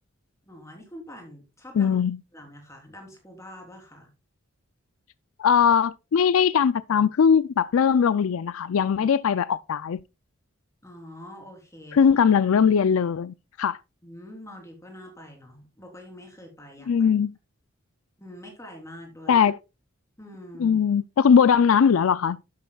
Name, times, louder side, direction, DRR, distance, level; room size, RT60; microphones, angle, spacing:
voice 1, 0.5-2.0 2.3-4.1 10.8-12.0 14.0-17.1 18.2-19.4 20.2-20.8, left 1 dB, 15° left, 3.5 m, -45 dB
voice 2, 1.8-2.2 5.4-10.0 11.9-13.8 16.9-17.3 19.3-19.6 20.6-22.4, left 7 dB, 75° left, 0.4 m, -20 dB
12.0 x 9.6 x 2.3 m
head